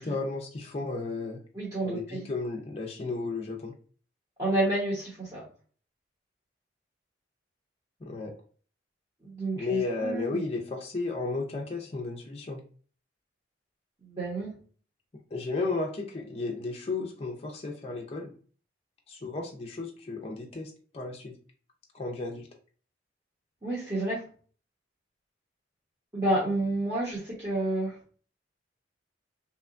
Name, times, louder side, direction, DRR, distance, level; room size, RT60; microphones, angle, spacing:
voice 1, 0.0-1.4 1.8-3.7 8.0-8.3 9.5-12.6 15.3-18.3 19.1-21.3 21.9-22.5, left 3 dB, 30° left, 0 dB, 0.4 m, -33 dB
voice 2, 1.5-2.3 4.4-5.4 9.2-10.4 14.0-14.5 23.6-24.2 26.1-27.9, right 1 dB, 20° right, -9 dB, 0.9 m, -30 dB
2.8 x 2.2 x 2.4 m, 0.41 s
head